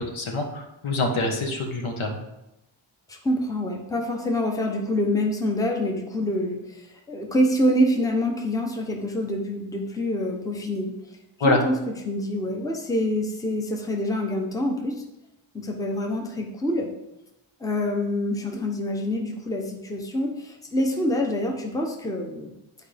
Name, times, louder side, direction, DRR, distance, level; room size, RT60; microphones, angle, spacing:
voice 1, 0.0-2.2 11.4-11.6, left 2 dB, 75° left, 1 dB, 1.4 m, -25 dB
voice 2, 3.1-11.0 11.4-11.8 12.0-15.0 15.5-16.9 17.6-22.5, left 1 dB, 5° left, 1 dB, 0.8 m, -26 dB
10.5 x 4.7 x 3.4 m, 0.91 s
wide cardioid pair, 160°, 49 cm